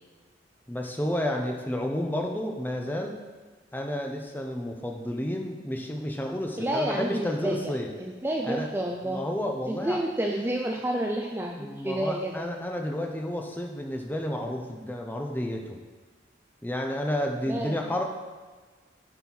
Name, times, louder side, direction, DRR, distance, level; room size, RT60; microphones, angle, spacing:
voice 1, 0.7-3.2 3.7-7.9 8.4-8.7 9.0-10.0 11.6-15.8 16.6-18.0, left 1 dB, 10° left, 2 dB, 0.9 m, -31 dB
voice 2, 6.6-7.7 8.0-9.3 9.7-12.5 17.5-17.8, right 1 dB, 10° right, 0 dB, 0.5 m, -30 dB
10.5 x 4.4 x 5.6 m, 1.4 s
head